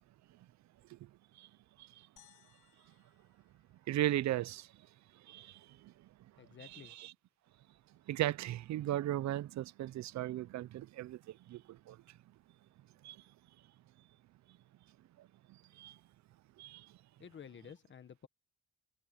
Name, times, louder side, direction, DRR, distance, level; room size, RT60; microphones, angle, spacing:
sound 1, 2.2-4.6, left 10 dB, 70° left, 3.4 m, -67 dB
voice 1, 3.9-4.7 5.1-5.9 6.6-7.1 8.1-12.2 13.0-13.2 15.2-16.0 16.6-16.9, right 14 dB, 55° right, 0.5 m, -38 dB
voice 2, 6.4-6.9 17.2-18.3, left 7 dB, 35° left, 1.4 m, -52 dB
cardioid pair, 150°, 33 cm